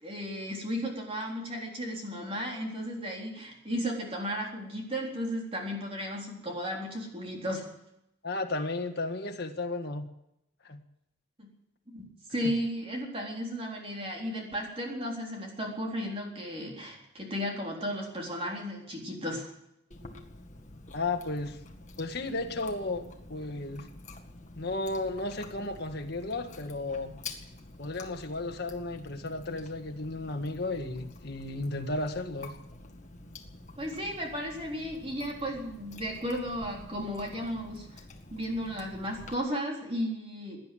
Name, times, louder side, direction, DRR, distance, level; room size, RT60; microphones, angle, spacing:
voice 1, 0.0-7.7 11.4-11.5 11.9-19.5 33.8-38.0 38.3-40.6, equal, 25° right, -1 dB, 3.8 m, -34 dB
voice 2, 8.2-10.1 10.6-10.8 12.4-12.5 20.9-21.6 22.0-23.9 24.6-27.2 27.8-32.5, left 2 dB, 50° left, 4 dB, 1.7 m, -34 dB
Chewing mastication, 19.9-39.4, left 2 dB, 35° left, 1.8 m, -48 dB
17.5 x 10.5 x 7.7 m, 0.80 s
head